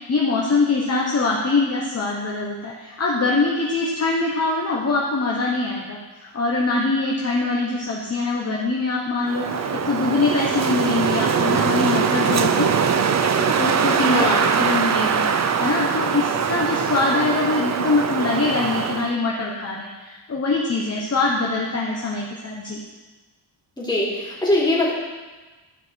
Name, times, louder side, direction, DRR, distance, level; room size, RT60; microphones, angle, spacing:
voice 1, 0.0-12.7 13.5-22.8, left 3 dB, 35° left, -3 dB, 1.1 m, -23 dB
Wind, 9.3-19.1, right 6 dB, 40° right, 0.5 m, -22 dB
voice 2, 14.1-14.4 23.8-24.9, left 1 dB, 10° left, -7 dB, 2.9 m, -21 dB
12.0 x 4.7 x 4.6 m, 1.2 s
wide cardioid pair, 115°, 45 cm